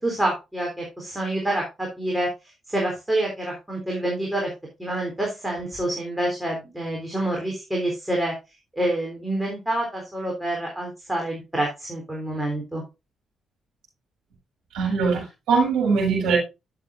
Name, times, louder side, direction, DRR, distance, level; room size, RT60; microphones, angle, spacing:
voice 1, 0.0-2.3 2.7-4.5 4.8-8.3 8.7-12.8, right 1 dB, 10° right, -1 dB, 3.6 m, -27 dB
voice 2, 14.7-16.4, right 5 dB, 70° right, -3 dB, 6.4 m, -21 dB
11.0 x 7.7 x 2.6 m, 0.26 s
hypercardioid pair, 40°, 0 cm